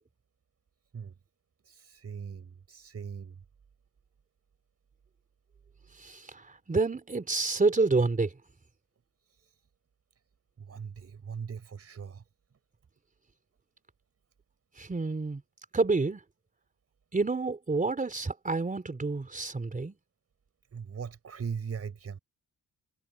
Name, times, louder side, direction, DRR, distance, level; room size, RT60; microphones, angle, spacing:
voice 1, 1.6-3.4 9.3-9.6 10.6-12.2 20.7-22.2, right 6 dB, 45° right, 5.6 m, -40 dB
voice 2, 6.0-8.3 14.8-15.4 15.7-16.2 17.1-20.0, right 3 dB, 25° right, 3.9 m, -28 dB
cardioid pair, 105°, 34 cm